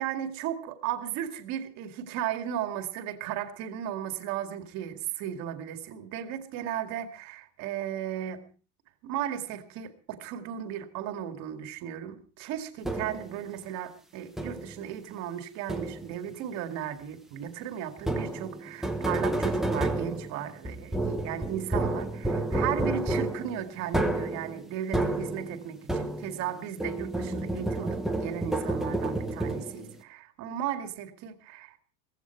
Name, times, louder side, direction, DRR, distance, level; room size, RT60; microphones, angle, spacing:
voice 1, 0.0-8.4 9.0-31.8, right 10 dB, 40° right, 8 dB, 2.2 m, -35 dB
sound 1, 12.8-13.4 14.4-14.8 15.7-16.2 18.0-26.5 26.8-30.0, right 2 dB, ahead, 1.0 m, -30 dB
17.5 x 15.5 x 4.6 m, 0.38 s
supercardioid pair, 160°, 42 cm